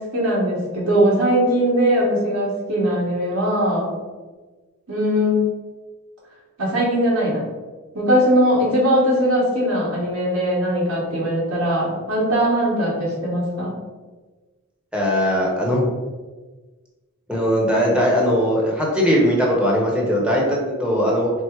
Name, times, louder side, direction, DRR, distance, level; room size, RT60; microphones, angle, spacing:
voice 1, 0.0-3.9 4.9-5.4 6.6-7.5 7.9-13.7, equal, 85° right, -5 dB, 1.3 m, -20 dB
voice 2, 14.9-15.9 17.3-21.3, equal, 5° right, -3 dB, 0.9 m, -19 dB
4.5 x 2.0 x 4.5 m, 1.3 s
head